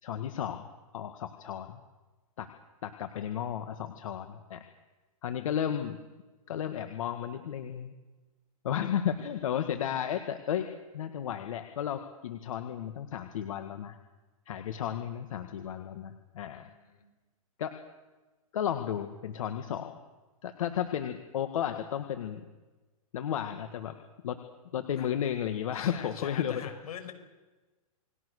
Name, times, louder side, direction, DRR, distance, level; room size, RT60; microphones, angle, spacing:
voice 1, 0.0-0.7 0.9-1.8 2.4-2.5 2.8-4.6 5.2-6.0 6.5-7.9 8.6-10.7 10.9-14.0 14.5-16.7 17.6-17.7 18.5-20.0 20.4-22.4 23.1-23.9 24.2-24.4 24.7-26.7, left 9 dB, 65° left, 7 dB, 1.9 m, -33 dB
voice 2, 16.5-17.0 25.0-25.1 25.7-27.1, left 8 dB, 80° left, 6 dB, 5.5 m, -44 dB
29.0 x 20.5 x 6.7 m, 1.2 s
hypercardioid pair, 165°, 19 cm